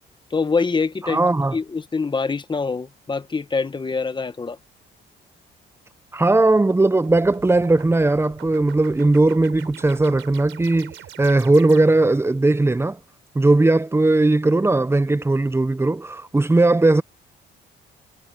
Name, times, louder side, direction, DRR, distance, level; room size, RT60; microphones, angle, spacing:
voice 1, 0.3-1.2 1.5-4.6, left 4 dB, 25° left, 1.2 m, -24 dB
voice 2, 1.1-1.6 6.1-13.0 13.3-17.0, right 2 dB, 10° right, 0.7 m, -18 dB
sound 1, 7.0-12.2, right 12 dB, 80° right, 4.1 m, -43 dB
cardioid pair, 90°, 20 cm